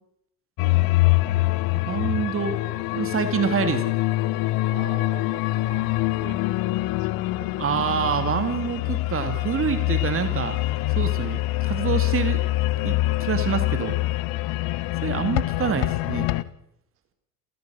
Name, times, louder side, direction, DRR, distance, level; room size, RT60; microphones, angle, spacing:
sound 1, 0.6-16.4, left 18 dB, 45° left, 1.0 m, -25 dB
voice 1, 1.8-2.6 2.9-3.9 7.6-10.6 11.0-12.4 12.8-14.0 15.0-16.3, right 7 dB, 25° right, 8 dB, 2.5 m, -26 dB
voice 2, 4.7-6.5 6.9-7.1 7.4-7.7, right 7 dB, 75° right, 6 dB, 4.4 m, -44 dB
28.5 x 16.0 x 6.4 m, 0.73 s
hypercardioid pair, 75°, 47 cm